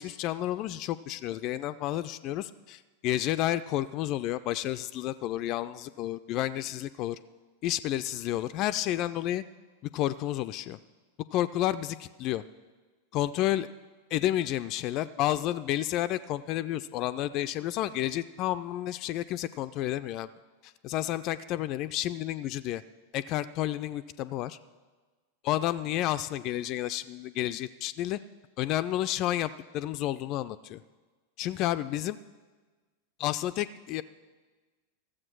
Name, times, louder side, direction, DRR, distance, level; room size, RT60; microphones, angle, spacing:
voice 1, 0.0-7.2 7.6-9.4 9.9-10.8 11.3-12.4 13.1-13.7 14.1-20.3 20.6-22.8 23.1-24.6 25.4-28.2 28.6-30.8 31.4-32.2 33.2-34.0, left 13 dB, 40° left, 13 dB, 0.3 m, -31 dB
14.0 x 7.6 x 6.1 m, 1.3 s
figure-of-eight pair, 90°, 0 cm